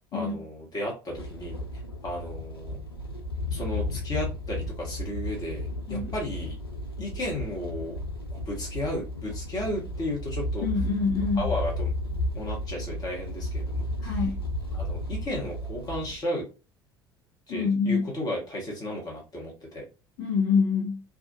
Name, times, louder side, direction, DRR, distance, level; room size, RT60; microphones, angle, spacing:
voice 1, 0.1-1.6 2.0-2.8 3.5-6.5 7.0-8.0 8.3-10.6 11.4-11.9 12.3-14.1 14.7-16.5 17.5-19.8, left 1 dB, 30° left, 1.2 m, -34 dB
sound 1, 1.1-16.1, left 1 dB, 90° left, 0.5 m, -33 dB
voice 2, 10.6-11.5 14.0-14.4 17.5-18.1 20.2-21.0, left 5 dB, 60° left, 1.0 m, -26 dB
2.4 x 2.4 x 2.6 m
figure-of-eight pair, 60°, 12 cm